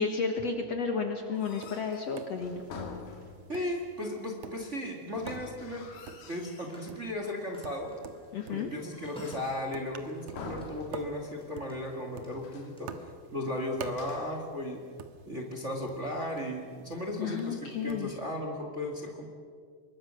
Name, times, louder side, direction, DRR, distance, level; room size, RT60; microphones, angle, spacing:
voice 1, 0.0-2.6 8.3-8.7 17.2-18.2, left 5 dB, 55° left, 5 dB, 2.0 m, -32 dB
sound 1, 1.2-3.7 5.1-6.8 7.2-7.8 8.4-9.8 10.3-11.4 11.7-11.8 12.3-12.8 13.8-14.5, left 4 dB, 80° left, 4.2 m, -46 dB
Tap, 1.3-18.1, right 6 dB, 60° right, 2.0 m, -49 dB
voice 2, 3.5-5.9 6.3-7.9 8.5-14.8 15.3-19.3, left 1 dB, 25° right, 2 dB, 1.8 m, -36 dB
Telephone, 3.9-4.2 6.1-11.0 11.3-12.8, left 1 dB, ahead, 5.0 m, -52 dB
25.5 x 22.0 x 6.4 m, 2.1 s
omnidirectional pair, 4.3 m